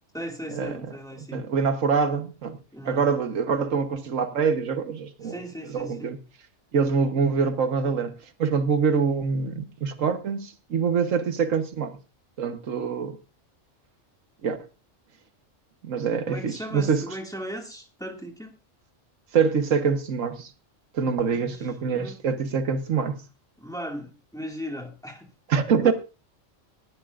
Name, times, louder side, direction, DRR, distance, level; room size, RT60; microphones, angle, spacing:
voice 1, 0.1-1.5 2.7-3.1 5.2-6.1 16.3-18.5 21.3-22.4 23.6-25.3 25.8-25.9, equal, 5° left, 2.0 m, -37 dB
voice 2, 1.3-2.6 2.8-5.4 5.7-6.2 6.7-8.1 8.4-12.0 12.4-13.2 14.4-14.6 15.8-17.0 19.3-20.5 20.9-23.2 25.5-25.9, right 5 dB, 90° right, 1.5 m, -25 dB
19.0 x 12.0 x 2.5 m
omnidirectional pair, 1.3 m